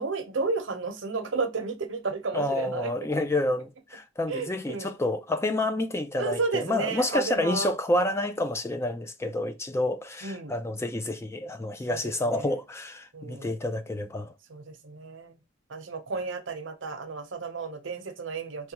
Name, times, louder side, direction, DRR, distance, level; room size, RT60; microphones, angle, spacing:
voice 1, 0.0-2.9 4.3-4.9 6.2-7.7 10.2-10.6 11.9-12.5 13.1-13.6 14.5-15.3 15.7-18.7, right 4 dB, 80° right, 0.8 m, -32 dB
voice 2, 2.3-14.3, left 1 dB, 15° left, 0.3 m, -29 dB
4.6 x 2.3 x 2.9 m
head